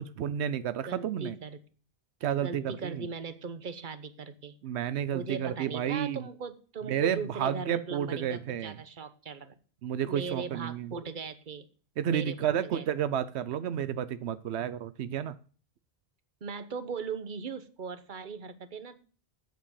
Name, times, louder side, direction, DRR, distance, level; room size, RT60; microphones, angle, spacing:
voice 1, 0.0-1.3 2.2-3.1 4.6-6.3 6.9-8.8 9.8-10.9 12.0-15.3, right 9 dB, 90° right, 14 dB, 0.9 m, -31 dB
voice 2, 0.8-1.6 2.4-4.5 5.1-9.6 10.1-11.6 12.1-12.8 16.4-19.1, right 5 dB, 50° right, 11 dB, 1.2 m, -39 dB
8.6 x 7.5 x 7.1 m, 0.40 s
omnidirectional pair, 1.1 m